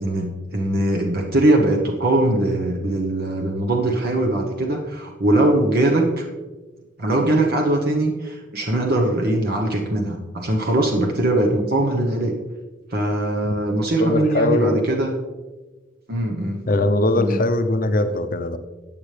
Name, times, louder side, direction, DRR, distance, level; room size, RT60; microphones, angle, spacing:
voice 1, 0.0-6.3 7.0-12.4 12.9-15.1 16.1-16.6 17.1-17.4, right 1 dB, 55° right, 1 dB, 1.1 m, -21 dB
voice 2, 13.4-14.9 16.7-18.6, left 2 dB, 45° left, 9 dB, 0.7 m, -21 dB
14.5 x 8.9 x 3.4 m, 1.2 s
head